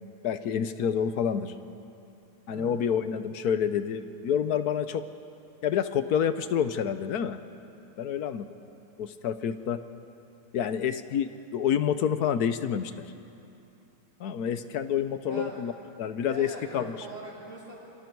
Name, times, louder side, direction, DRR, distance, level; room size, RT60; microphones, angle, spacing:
voice 1, 0.2-1.5 2.5-5.0 5.6-7.4 8.0-8.5 9.0-9.8 10.5-13.0 14.2-15.7 16.0-16.9, left 8 dB, 75° left, 11 dB, 1.3 m, -28 dB
voice 2, 15.2-15.6 16.3-17.8, right 1 dB, 45° right, -4 dB, 6.2 m, -42 dB
27.0 x 25.5 x 4.6 m, 2.8 s
omnidirectional pair, 1.7 m